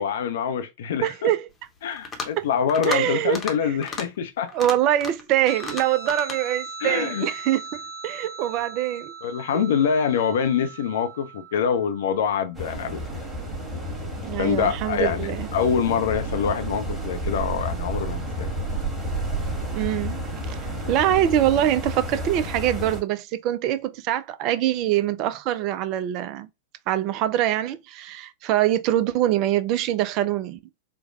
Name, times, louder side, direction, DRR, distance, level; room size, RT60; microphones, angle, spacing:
voice 1, 0.0-1.3 1.8-4.5 6.8-7.3 9.2-13.2 14.4-18.5, left 7 dB, 60° left, 0.5 m, -25 dB
voice 2, 1.0-1.5 2.4-2.5 2.8-3.4 3.6-3.7 4.5-9.1 9.5-9.7 14.3-15.5 19.7-20.2 20.5-26.5 26.9-30.6, right 12 dB, 40° right, 0.3 m, -24 dB
sound 1, 1.9-2.4 2.7-3.0 3.3-3.6 3.8-4.1 4.5-5.3 5.6-6.4, left 4 dB, 20° left, 0.8 m, -33 dB
Guitar, 5.4-12.4, right 5 dB, 25° right, 1.4 m, -39 dB
sound 2, 12.5-23.0, right 1 dB, 5° right, 1.3 m, -31 dB
4.5 x 2.1 x 2.3 m
figure-of-eight pair, 90°, 0 cm